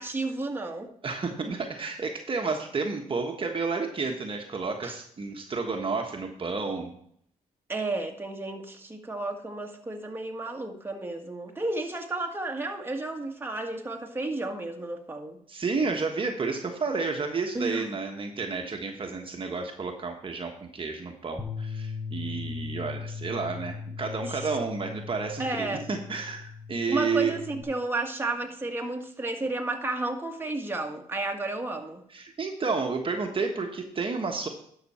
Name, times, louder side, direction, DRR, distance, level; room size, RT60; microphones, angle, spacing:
voice 1, 0.0-0.9 4.8-4.9 7.7-15.4 17.5-18.0 24.3-24.5 25.4-25.8 26.9-32.0, right 2 dB, 15° right, 3 dB, 1.6 m, -32 dB
voice 2, 1.0-6.9 15.5-27.4 32.1-34.5, right 4 dB, 40° right, 3 dB, 1.3 m, -31 dB
Bass guitar, 21.4-27.6, left 5 dB, 10° left, 1.7 m, -38 dB
11.5 x 6.0 x 4.4 m, 0.65 s
supercardioid pair, 65°, 14 cm